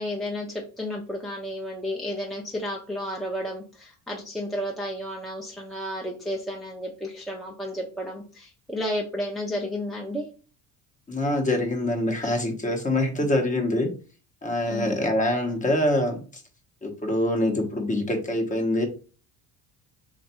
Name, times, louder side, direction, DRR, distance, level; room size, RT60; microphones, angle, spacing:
voice 1, 0.0-10.3 13.2-13.3 14.7-14.9, equal, ahead, -1 dB, 0.7 m, -32 dB
voice 2, 11.1-13.9 14.4-16.2 16.8-18.9, left 1 dB, 20° left, 3 dB, 1.0 m, -25 dB
3.2 x 2.5 x 4.2 m, 0.37 s
cardioid pair, 105°, 39 cm